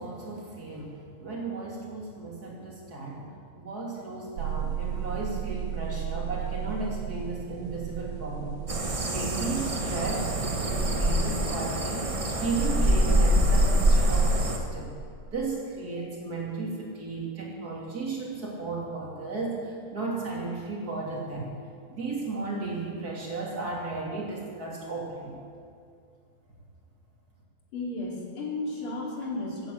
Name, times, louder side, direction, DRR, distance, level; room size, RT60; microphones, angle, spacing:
voice 1, 0.0-8.6 9.0-14.9 15.3-21.5 21.9-25.4, right 3 dB, 45° right, -2 dB, 3.2 m, -34 dB
sound 1, 4.4-11.1, right 9 dB, 80° right, 1.4 m, -35 dB
sound 2, 8.7-14.6, right 1 dB, 30° right, 0.6 m, -24 dB
voice 2, 27.7-29.7, left 2 dB, 80° left, -2 dB, 3.6 m, -33 dB
14.5 x 9.5 x 8.0 m, 2.3 s
omnidirectional pair, 2.3 m